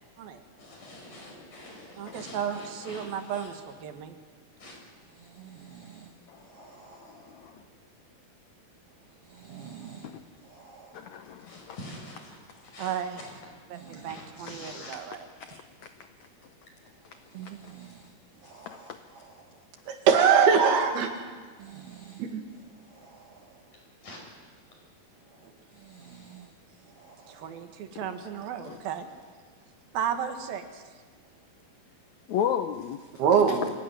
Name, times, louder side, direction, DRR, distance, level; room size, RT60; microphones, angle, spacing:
voice 1, 0.6-3.5 4.6-4.8 11.4-13.0 13.9-15.0 24.0-24.2, left 1 dB, 55° left, 7.2 m, -45 dB
voice 2, 2.0-4.2 12.8-13.2 13.7-15.3 25.4-25.5 27.3-29.1 29.9-30.8, right 8 dB, 75° right, 3.3 m, -35 dB
voice 3, 5.1-6.1 6.4-7.5 9.2-10.1 10.4-11.1 13.7-14.3 17.3-18.1 18.4-19.6 21.6-22.3 22.8-23.7 25.3-26.5 26.8-27.7 31.2-31.3, right 8 dB, 55° right, 1.9 m, -49 dB
voice 4, 7.0-7.6 10.1-10.2 10.9-11.8 14.7-14.8 15.4-15.9 17.4-17.7 18.7-18.8 28.7-28.8 32.3-33.0, left 9 dB, 75° left, 1.7 m, -34 dB
voice 5, 19.9-21.1 22.2-22.4 33.2-33.7, right 6 dB, 90° right, 4.1 m, -21 dB
25.0 x 17.5 x 9.7 m
omnidirectional pair, 4.3 m